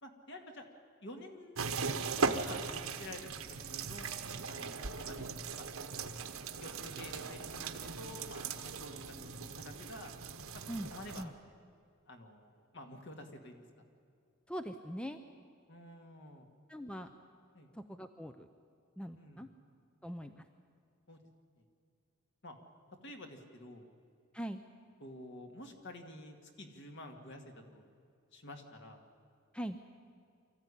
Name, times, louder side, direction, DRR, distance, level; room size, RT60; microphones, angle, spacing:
voice 1, 0.0-0.7 1.0-4.1 4.5-5.3 5.6-5.7 6.6-10.1 10.5-10.6 10.9-11.3 12.1-13.6 15.7-16.5 17.5-17.7 19.2-19.4 21.1-21.2 22.4-22.6 23.0-23.8 25.0-27.4 27.7-27.9 28.3-29.0, left 1 dB, 55° left, 4 dB, 2.3 m, -50 dB
sound 1, 1.5-11.2, right 4 dB, 75° right, 1.2 m, -39 dB
voice 2, 14.5-15.2 16.7-17.1 17.7-18.5 19.0-19.5 20.0-20.4 24.3-24.6 29.5-29.8, equal, 5° left, 8 dB, 0.6 m, -41 dB
24.0 x 14.5 x 10.0 m, 2.3 s
head